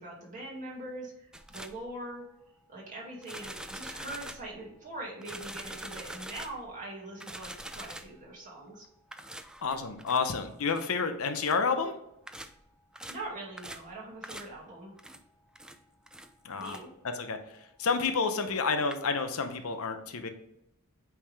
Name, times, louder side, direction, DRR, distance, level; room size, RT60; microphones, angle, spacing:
voice 1, 0.0-2.2 2.7-8.9 13.1-14.9 16.6-16.9, right 1 dB, 35° right, -4 dB, 2.3 m, -42 dB
sound 1, 1.3-1.9 3.2-4.6 5.2-6.7 7.2-8.2 9.1-10.3 10.7-10.9 11.4-11.6 12.3-12.6 12.9-13.3 13.6-13.9 14.2-14.6 15.0-15.2 15.6-15.8 16.1-16.3 16.6-16.8 18.5-18.6 18.9-19.0, right 1 dB, 5° right, 0.3 m, -44 dB
voice 2, 9.6-11.9 16.4-16.8 17.0-20.3, left 5 dB, 70° left, 7 dB, 0.7 m, -30 dB
8.5 x 3.5 x 3.4 m, 0.81 s
head